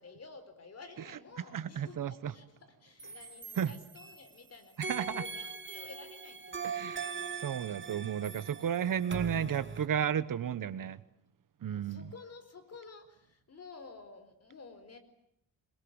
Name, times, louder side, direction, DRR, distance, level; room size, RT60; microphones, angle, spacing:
voice 1, 0.0-7.5 11.7-15.0, left 4 dB, 40° left, 4.5 m, -52 dB
voice 2, 1.5-2.3 3.6-3.7 4.9-5.2 6.7-7.1 7.4-11.0 11.6-12.0, right 9 dB, 60° right, 1.2 m, -33 dB
sound 1, 3.0-4.4 4.8-9.9, right 5 dB, 30° right, 2.2 m, -41 dB
28.0 x 21.5 x 9.7 m
wide cardioid pair, 135°, 38 cm